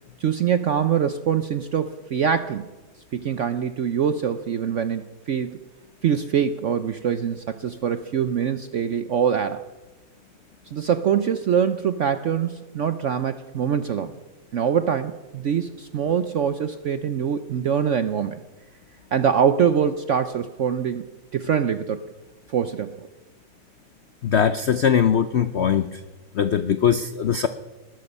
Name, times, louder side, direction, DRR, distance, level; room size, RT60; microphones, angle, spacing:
voice 1, 0.2-2.6 3.1-5.6 6.0-9.6 10.7-14.1 14.5-18.4 19.1-22.0 22.5-23.1, right 8 dB, 70° right, 11 dB, 0.7 m, -24 dB
voice 2, 24.2-26.0 26.3-27.5, left 8 dB, 80° left, 12 dB, 0.6 m, -21 dB
19.5 x 13.0 x 5.4 m, 1.1 s
omnidirectional pair, 2.0 m